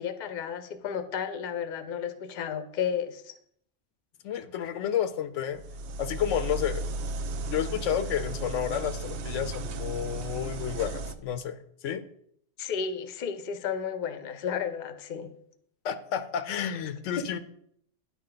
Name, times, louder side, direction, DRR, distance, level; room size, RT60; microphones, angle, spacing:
voice 1, 0.0-3.3 12.6-15.3 17.2-17.4, left 7 dB, 50° left, 11 dB, 0.7 m, -33 dB
voice 2, 4.2-5.6 6.0-6.8 7.5-12.0 15.8-17.4, left 9 dB, 90° left, 11 dB, 1.0 m, -31 dB
sound 1, 5.5-11.1, right 2 dB, 70° right, 0.8 m, -35 dB
10.0 x 4.8 x 3.8 m, 0.69 s
omnidirectional pair, 1.2 m